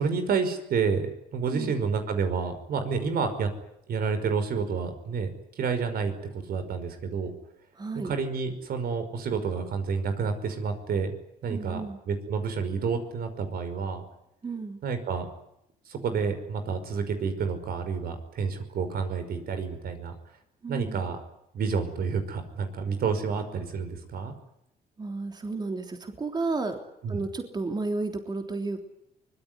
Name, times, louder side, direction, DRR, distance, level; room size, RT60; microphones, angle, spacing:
voice 1, 0.0-3.5 3.9-7.3 8.0-11.1 11.4-11.8 12.1-14.0 14.8-15.3 15.9-20.1 20.7-21.2 21.5-24.3 27.0-27.2, right 5 dB, 70° right, 9 dB, 5.5 m, -29 dB
voice 2, 7.8-8.1 11.5-12.0 14.4-14.8 20.6-21.1 25.0-26.8 27.1-28.8, right 3 dB, 25° right, 4 dB, 3.4 m, -32 dB
24.5 x 22.0 x 9.7 m, 0.79 s
cardioid pair, 130°, 16 cm